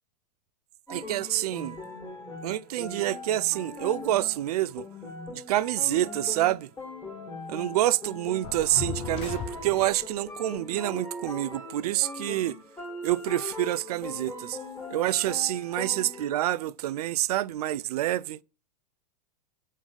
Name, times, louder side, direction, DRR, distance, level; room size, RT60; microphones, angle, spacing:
sound 1, 0.9-16.5, left 2 dB, 15° left, 2.2 m, -40 dB
voice 1, 0.9-1.8 2.4-4.9 5.3-6.7 7.5-12.6 13.0-14.6 14.9-18.4, right 14 dB, 70° right, 0.4 m, -27 dB
sound 2, 8.4-10.1, left 8 dB, 30° left, 0.6 m, -36 dB
5.2 x 3.7 x 5.1 m
hypercardioid pair, 120°, 20 cm